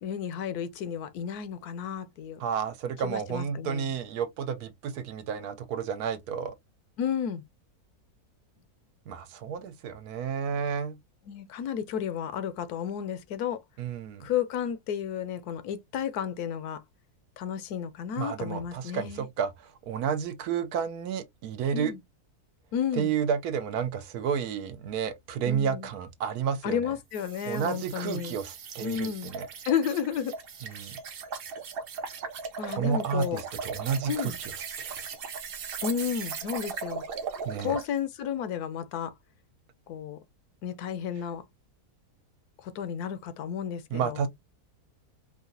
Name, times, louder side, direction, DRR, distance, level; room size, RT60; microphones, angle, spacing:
voice 1, 0.0-2.4 3.0-3.9 7.0-7.4 11.3-13.6 14.2-16.8 17.4-19.3 21.7-22.0 22.7-23.1 25.5-25.9 26.6-28.4 28.8-29.3 29.7-30.4 32.6-33.4 34.1-34.4 35.8-37.0 37.6-39.1 39.9-40.2 40.6-41.4 42.6-44.2, left 8 dB, 90° left, 1.2 m, -32 dB
voice 2, 2.4-6.5 9.1-11.0 13.8-14.3 18.2-21.9 23.0-26.8 27.4-29.5 30.7-31.0 32.7-34.5 34.8-35.1 37.4-37.8 43.9-44.3, right 7 dB, 75° right, 1.2 m, -31 dB
sound 1, 27.1-37.9, right 6 dB, 55° right, 0.7 m, -38 dB
4.8 x 2.3 x 2.6 m
omnidirectional pair, 1.6 m